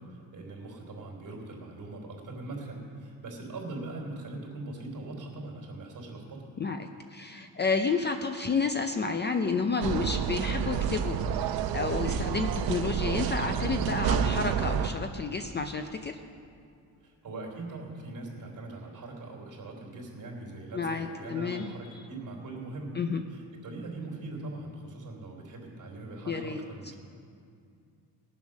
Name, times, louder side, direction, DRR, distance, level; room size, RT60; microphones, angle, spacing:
voice 1, 0.3-6.5 17.0-23.0 23.3-27.0, right 2 dB, 45° right, -1 dB, 3.1 m, -41 dB
voice 2, 6.6-16.2 20.7-22.0 22.9-23.2 26.3-26.6, left 4 dB, 25° left, 7 dB, 0.5 m, -31 dB
sound 1, 9.8-14.9, right 8 dB, 60° right, 0.7 m, -29 dB
19.5 x 7.2 x 6.2 m, 2.3 s
cardioid pair, 145°, 40 cm